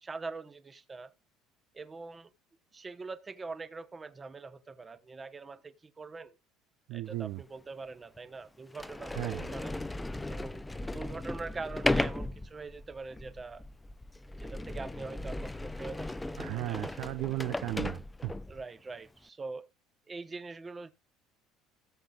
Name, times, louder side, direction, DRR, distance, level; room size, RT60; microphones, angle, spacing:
voice 1, 0.0-1.1 1.7-2.3 2.7-6.3 6.9-9.7 10.3-10.6 10.9-13.6 14.4-16.9 18.5-19.7 20.1-20.9, right 4 dB, 20° right, 1.0 m, -43 dB
voice 2, 6.9-7.4 9.1-9.5 16.4-18.3, right 18 dB, 65° right, 0.5 m, -35 dB
Sliding door, 7.3-7.4 8.2-8.3 8.7-18.6, left 2 dB, 10° left, 0.5 m, -36 dB
17.0 x 7.6 x 2.4 m
cardioid pair, 145°, 0 cm